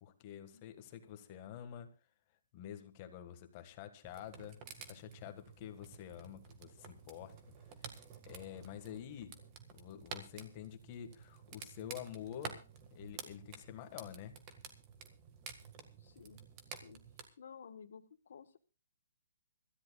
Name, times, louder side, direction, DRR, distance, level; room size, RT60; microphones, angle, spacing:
voice 1, 0.0-1.9 2.5-7.3 7.6-7.7 8.2-9.3 9.7-12.6 12.9-14.3, left 10 dB, 25° left, 8 dB, 1.7 m, -48 dB
sound 1, 4.0-17.2, right 6 dB, 25° right, 1.7 m, -52 dB
voice 2, 16.0-16.4 16.7-17.0 17.4-18.6, left 6 dB, 60° left, 5 dB, 1.4 m, -54 dB
25.0 x 13.5 x 2.4 m, 0.32 s
hypercardioid pair, 170°, 0 cm